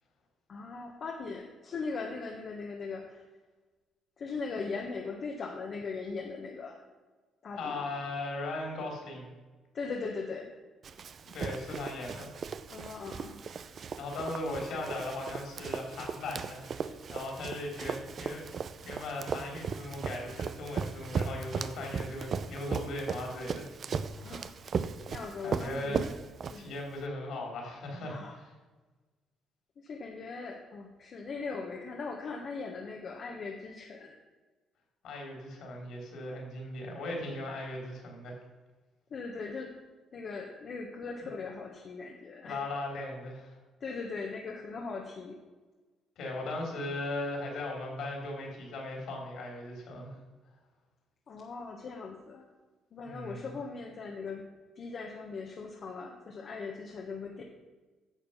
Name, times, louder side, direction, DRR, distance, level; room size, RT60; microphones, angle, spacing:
voice 1, 0.5-3.2 4.2-6.8 7.4-7.9 9.7-10.5 12.7-13.4 24.1-24.5 25.1-26.1 26.5-26.7 28.1-28.4 29.8-34.1 39.1-39.7 40.1-42.8 43.8-45.4 51.3-52.4 52.9-54.4 54.7-57.4, left 4 dB, 55° left, 0 dB, 1.3 m, -39 dB
voice 2, 7.6-9.3 11.3-12.3 14.0-18.4 18.8-23.7 25.4-26.0 26.6-28.5 35.0-38.4 42.4-43.6 46.2-50.2 53.0-53.5, left 2 dB, 70° left, 0 dB, 3.7 m, -38 dB
Run, 10.8-27.0, right 6 dB, 55° right, 0.6 m, -37 dB
10.5 x 6.7 x 5.7 m, 1.3 s
supercardioid pair, 70°, 0 cm